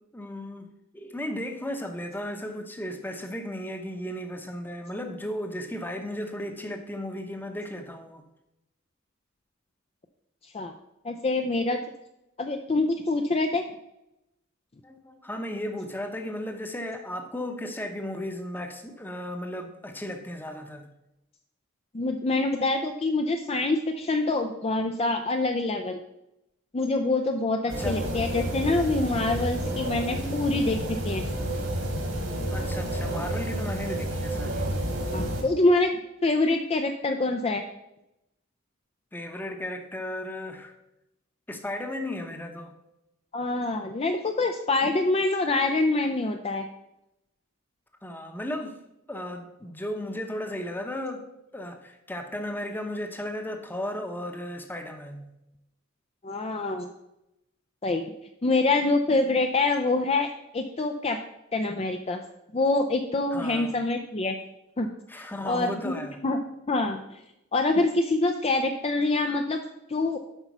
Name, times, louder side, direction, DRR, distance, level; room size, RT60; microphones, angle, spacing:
voice 1, 0.1-0.7 0.9-8.2 14.8-20.9 27.7-28.0 30.2-30.4 32.5-34.7 39.1-40.7 41.5-42.7 48.0-48.8 49.1-51.3 51.5-55.3 63.3-63.8 65.1-66.2, left 1 dB, 10° left, 5 dB, 0.8 m, -35 dB
voice 2, 10.4-10.7 11.0-11.8 12.4-13.6 21.9-26.0 26.7-30.8 31.1-31.2 35.1-35.9 36.2-37.6 43.3-46.6 56.2-56.9 57.8-58.0 58.4-60.3 60.5-61.2 61.5-62.2 62.5-64.3 64.8-64.9 65.4-66.4 66.7-67.2 67.5-69.6 69.9-70.2, left 2 dB, 30° left, 5 dB, 0.5 m, -25 dB
sound 1, 27.7-35.4, right 1 dB, 70° right, 2.1 m, -30 dB
8.1 x 5.4 x 6.0 m, 0.89 s
head